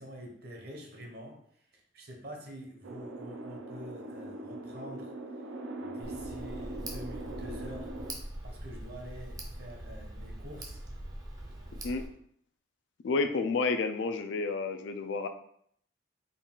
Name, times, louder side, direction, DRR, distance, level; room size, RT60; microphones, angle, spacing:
voice 1, 0.0-1.4 1.9-5.1 5.9-7.9 8.4-10.8, equal, 50° right, 2 dB, 0.8 m, -46 dB
sound 1, 2.8-8.1, right 2 dB, 85° right, 0.5 m, -41 dB
Tick, 6.0-12.1, right 1 dB, 20° right, 0.5 m, -42 dB
voice 2, 13.0-15.3, left 4 dB, 70° left, 8 dB, 0.3 m, -30 dB
3.9 x 2.3 x 3.7 m, 0.67 s
head